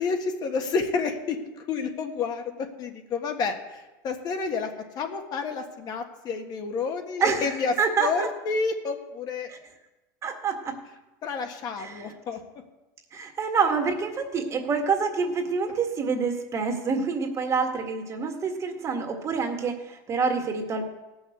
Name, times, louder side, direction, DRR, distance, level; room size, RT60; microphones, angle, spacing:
voice 1, 0.0-1.4 1.7-4.7 4.9-7.7 8.0-9.5 11.2-12.4, left 5 dB, 40° left, 5 dB, 1.6 m, -29 dB
voice 2, 7.2-8.3 9.5-9.6 10.2-10.8 11.8-12.1 13.1-20.9, right 5 dB, 30° right, 4 dB, 1.8 m, -27 dB
17.0 x 6.3 x 8.0 m, 1.0 s
supercardioid pair, 130°, 10 cm